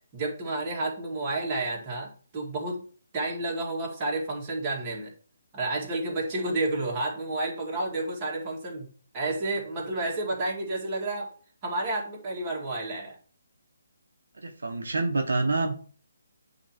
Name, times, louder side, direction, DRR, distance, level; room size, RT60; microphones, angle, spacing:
voice 1, 0.1-2.8 3.1-5.1 5.5-11.3 11.6-13.2, right 2 dB, 25° right, -3 dB, 2.2 m, -30 dB
voice 2, 14.4-15.7, right 3 dB, 70° right, 3 dB, 1.0 m, -27 dB
8.7 x 3.0 x 4.4 m, 0.42 s
figure-of-eight pair, 145°, 0 cm